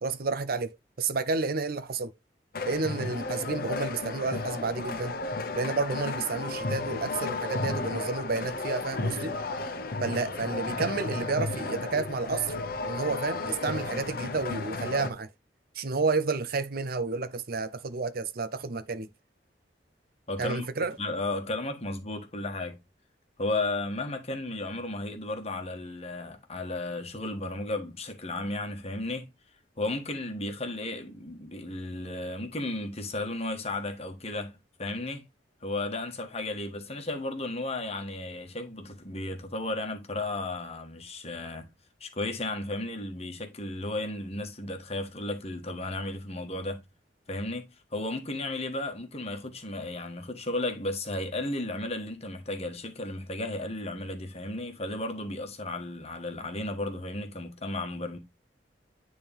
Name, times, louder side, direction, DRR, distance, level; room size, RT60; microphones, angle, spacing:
voice 1, 0.0-2.1 2.7-5.2 5.5-9.4 10.0-12.5 12.8-15.3 15.7-19.1 20.4-20.9, right 4 dB, 55° right, 0.6 m, -30 dB
sound 1, 2.5-15.1, left 3 dB, 55° left, 1.0 m, -33 dB
voice 2, 20.3-20.7 21.0-22.8 23.4-29.3 29.8-35.3 35.6-41.7 42.0-46.8 47.3-58.2, left 2 dB, 35° left, 1.5 m, -34 dB
9.6 x 3.8 x 3.5 m
head